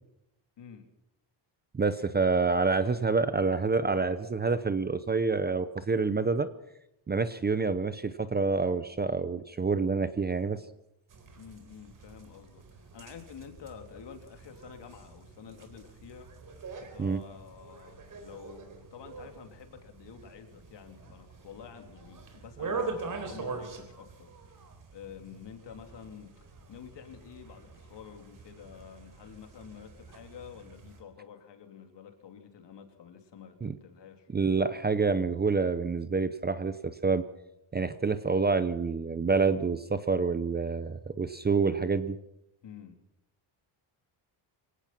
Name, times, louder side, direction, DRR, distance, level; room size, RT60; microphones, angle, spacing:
voice 1, 1.7-6.5 7.1-10.6 17.0-17.2 33.6-33.8 34.3-37.2 37.7-42.2, right 4 dB, 20° right, 12 dB, 0.7 m, -27 dB
sound 1, 11.1-31.0, right 4 dB, 40° right, 4.0 m, -44 dB
voice 2, 11.4-24.6 24.9-26.3 26.7-34.3 42.6-43.0, left 7 dB, 55° left, 5 dB, 3.3 m, -49 dB
24.5 x 18.0 x 6.0 m, 0.82 s
cardioid pair, 170°, 49 cm